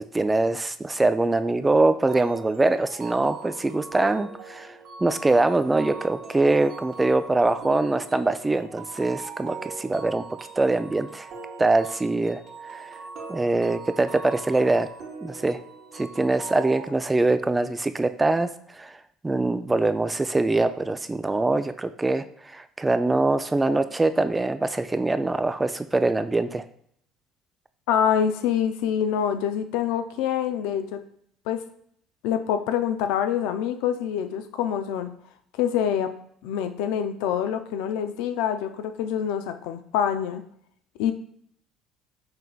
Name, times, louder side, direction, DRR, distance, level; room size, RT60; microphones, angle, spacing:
voice 1, 0.0-4.7 5.0-10.2 10.6-11.3 11.6-12.4 12.7-12.9 13.3-14.9 15.2-15.6 15.9-19.0 19.2-26.6, right 2 dB, 15° right, 11 dB, 0.3 m, -23 dB
sound 1, 2.1-16.9, right 5 dB, 55° right, 1.1 m, -40 dB
voice 2, 27.9-31.0 31.5-31.6 32.2-35.1 35.6-36.1 36.4-40.4 41.0-41.1, left 9 dB, 80° left, 9 dB, 0.4 m, -25 dB
5.7 x 3.3 x 2.3 m, 0.65 s
supercardioid pair, 85°, 0 cm